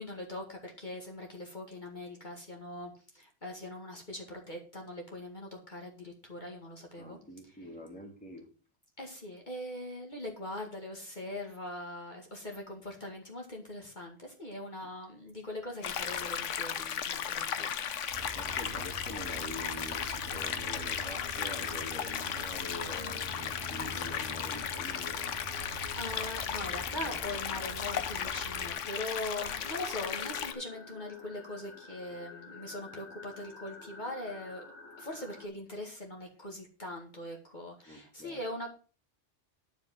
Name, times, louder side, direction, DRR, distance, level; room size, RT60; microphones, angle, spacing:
voice 1, 0.0-7.2 9.0-17.7 26.0-34.7 35.0-38.7, left 1 dB, 40° left, 2.1 m, -41 dB
voice 2, 7.0-8.5 18.3-25.4 26.9-27.3 37.9-38.4, left 1 dB, 5° left, 2.2 m, -46 dB
sound 1, 15.8-30.5, left 8 dB, 85° left, 1.2 m, -36 dB
sound 2, 18.1-28.7, right 2 dB, 60° right, 1.6 m, -46 dB
sound 3, 20.3-35.5, left 5 dB, 70° left, 2.5 m, -51 dB
11.0 x 4.9 x 7.4 m
omnidirectional pair, 1.2 m